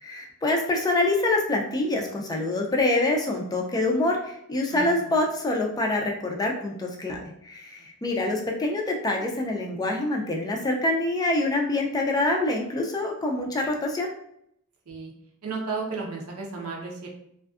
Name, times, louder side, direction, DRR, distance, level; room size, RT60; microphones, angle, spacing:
voice 1, 0.0-14.1, left 2 dB, 15° left, 0 dB, 0.3 m, -26 dB
voice 2, 4.7-5.1 7.8-8.2 14.9-15.1 15.4-17.1, right 4 dB, 80° right, -1 dB, 0.7 m, -34 dB
2.5 x 2.3 x 2.3 m, 0.72 s
head